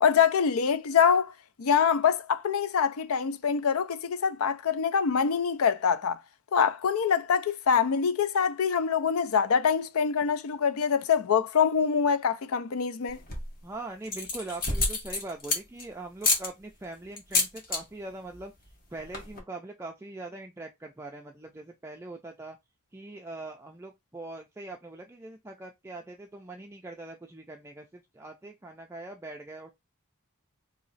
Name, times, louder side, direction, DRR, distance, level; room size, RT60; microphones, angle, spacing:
voice 1, 0.0-1.3 1.6-6.2 6.5-13.2, left 6 dB, 85° left, 0.5 m, -25 dB
sound 1, 13.1-13.6 14.0-15.8 16.2-16.5 17.2-17.8 18.1-18.4 18.7-18.8 19.0-19.4, left 3 dB, 45° left, 1.2 m, -28 dB
voice 2, 13.6-18.5 18.9-22.6 22.9-29.7, right 2 dB, 10° right, 0.4 m, -42 dB
3.0 x 2.8 x 4.0 m
head